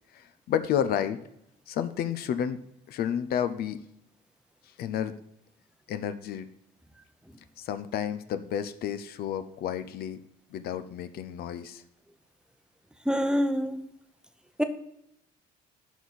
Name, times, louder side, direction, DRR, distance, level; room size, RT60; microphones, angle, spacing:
voice 1, 0.1-1.2 1.7-2.6 2.9-3.8 4.8-5.2 5.9-6.5 7.6-10.2 10.5-11.8, left 9 dB, 65° left, 0.6 m, -31 dB
voice 2, 13.0-13.9 14.6-14.7, equal, 5° right, 0.7 m, -26 dB
11.5 x 4.2 x 4.2 m
cardioid pair, 110°, 17 cm